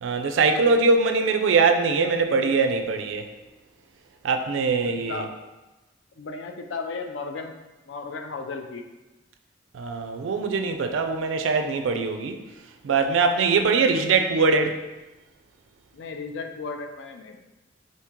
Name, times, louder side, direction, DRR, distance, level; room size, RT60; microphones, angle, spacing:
voice 1, 0.0-3.3 4.2-5.3 9.7-12.4 12.8-14.8, right 4 dB, 90° right, 6 dB, 0.4 m, -22 dB
voice 2, 4.8-5.3 6.2-7.5 7.9-8.8 15.9-17.4, left 4 dB, 70° left, 4 dB, 0.4 m, -35 dB
2.9 x 2.7 x 3.5 m, 1.1 s
head